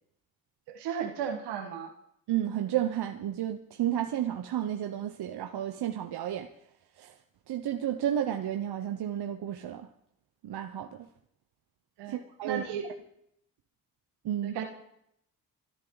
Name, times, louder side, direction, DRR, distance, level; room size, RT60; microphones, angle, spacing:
voice 1, 0.7-1.9 12.0-12.2 12.4-12.9 14.4-14.6, right 8 dB, 90° right, 5 dB, 1.9 m, -34 dB
voice 2, 2.3-6.5 7.0-7.1 7.5-9.9 10.4-11.1 12.1-12.6 14.2-14.5, right 11 dB, 70° right, 6 dB, 1.1 m, -32 dB
28.0 x 10.5 x 4.0 m, 0.75 s
supercardioid pair, 45°, 40 cm